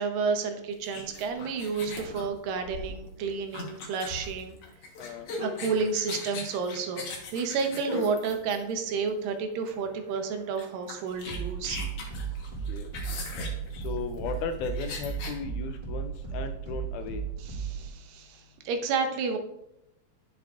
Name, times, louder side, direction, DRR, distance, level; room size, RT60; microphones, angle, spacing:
voice 1, 0.0-4.6 5.4-7.0 7.3-11.8 17.5-19.4, right 5 dB, 85° right, 5 dB, 2.6 m, -31 dB
sound 1, 0.8-8.9 9.7-9.9 10.2-10.3 10.6-15.4, left 3 dB, 55° left, 1.8 m, -39 dB
voice 2, 5.0-5.3 12.7-13.2 13.7-17.2, left 6 dB, 80° left, 7 dB, 1.8 m, -36 dB
sound 2, 9.2-17.9, right 7 dB, 15° right, 2.7 m, -36 dB
10.5 x 7.1 x 2.5 m, 0.85 s
omnidirectional pair, 3.9 m